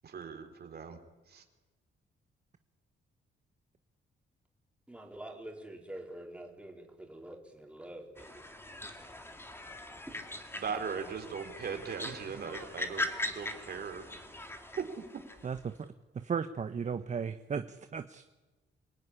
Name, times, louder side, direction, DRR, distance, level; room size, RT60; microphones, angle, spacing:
voice 1, 0.0-1.0 1.3-1.4 10.6-14.0 14.8-14.9, right 6 dB, 50° right, 6 dB, 3.5 m, -39 dB
voice 2, 4.9-8.4 10.1-10.2, right 1 dB, 5° right, 1 dB, 4.2 m, -46 dB
sound 1, 8.2-15.6, left 1 dB, 10° left, 2.5 m, -41 dB
voice 3, 15.4-15.8 16.1-18.3, right 6 dB, 35° right, 10 dB, 1.0 m, -35 dB
27.0 x 18.0 x 9.9 m, 1.2 s
cardioid pair, 135°, 21 cm